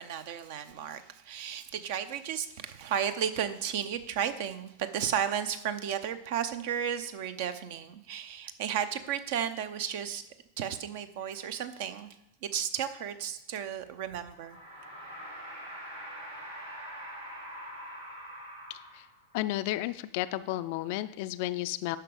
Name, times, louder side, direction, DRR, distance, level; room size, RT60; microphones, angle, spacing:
voice 1, 0.0-10.2 10.6-12.2 12.4-14.6, right 9 dB, 50° right, 11 dB, 0.7 m, -33 dB
sound 1, 14.3-19.4, equal, 80° right, 2.6 m, -44 dB
voice 2, 18.7-19.1 19.3-22.0, left 16 dB, 50° left, 13 dB, 0.4 m, -33 dB
10.0 x 6.0 x 5.0 m, 0.83 s
figure-of-eight pair, 90°, 0 cm